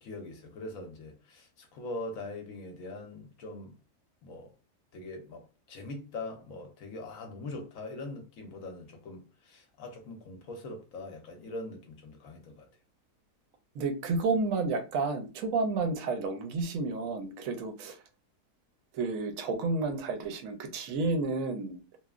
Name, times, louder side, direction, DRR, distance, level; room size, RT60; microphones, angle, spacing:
voice 1, 0.0-3.8 4.2-4.5 4.9-12.7, left 2 dB, 65° left, 0.9 m, -42 dB
voice 2, 13.7-18.0 18.9-21.8, right 3 dB, 70° right, 0.9 m, -31 dB
3.0 x 2.0 x 2.3 m
omnidirectional pair, 1.7 m